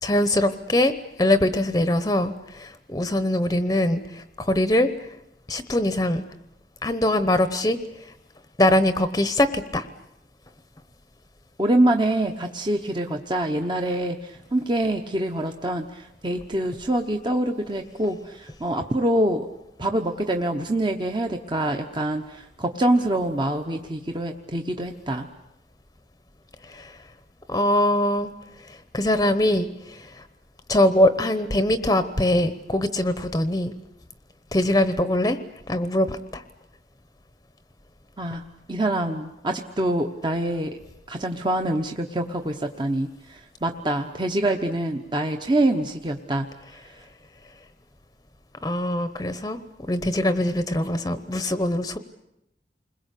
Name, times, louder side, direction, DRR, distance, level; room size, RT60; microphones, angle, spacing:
voice 1, 0.0-0.9 1.2-4.9 5.5-6.2 6.8-7.8 8.6-9.9 26.7-26.9 27.5-28.3 28.7-30.2 30.7-33.7 34.5-35.4 35.7-36.4 48.6-49.6 49.9-52.0, left 1 dB, 20° left, 11 dB, 0.9 m, -22 dB
voice 2, 11.6-19.5 19.8-25.3 38.2-38.4 38.7-40.8 41.1-46.5, right 1 dB, 25° right, 4 dB, 1.0 m, -25 dB
29.0 x 21.5 x 8.4 m, 0.84 s
head